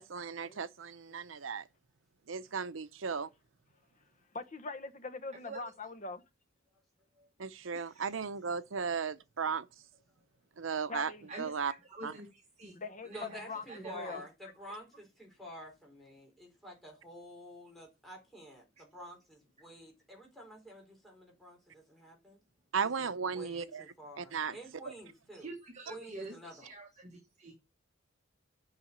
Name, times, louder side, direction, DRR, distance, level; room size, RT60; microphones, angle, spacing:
voice 1, 0.0-1.6 2.3-3.3 7.4-9.7 10.6-11.1 11.4-11.7 12.0-12.1 22.7-23.8 24.2-24.5, right 6 dB, 80° right, 0.7 m, -35 dB
voice 2, 4.3-6.2 10.9-11.3 12.7-13.1 13.5-13.6 13.9-14.2, left 3 dB, 40° left, 1.0 m, -42 dB
voice 3, 5.3-5.6 7.7-8.2 8.7-8.8 11.3-12.7 13.0-14.2 18.8-18.9 25.3-27.5, right 2 dB, 35° right, 1.7 m, -47 dB
voice 4, 13.0-22.4 22.8-25.5 25.9-26.7, equal, ahead, 4.1 m, -50 dB
8.0 x 5.6 x 7.4 m
head